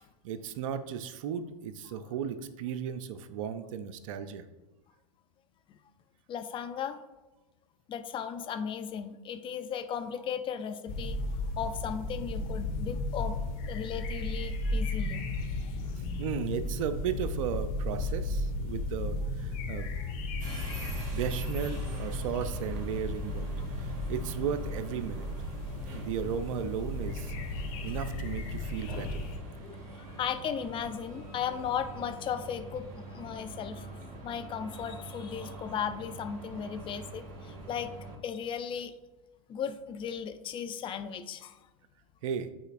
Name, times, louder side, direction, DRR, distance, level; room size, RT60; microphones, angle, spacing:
voice 1, 0.0-4.4 16.0-19.9 21.1-23.5 23.8-25.3 25.8-27.3 27.8-29.3 42.2-42.5, right 7 dB, 60° right, 10 dB, 0.5 m, -35 dB
voice 2, 6.3-7.0 7.9-13.4 13.7-15.3 29.6-33.9 34.2-37.9 38.2-38.9 39.5-41.6, left 8 dB, 25° left, 8 dB, 0.5 m, -36 dB
sound 1, 10.9-29.4, left 2 dB, 50° left, 1.2 m, -35 dB
sound 2, 20.4-38.2, right 2 dB, 45° right, 1.9 m, -44 dB
9.0 x 4.2 x 2.5 m, 1.1 s
hypercardioid pair, 100°, 19 cm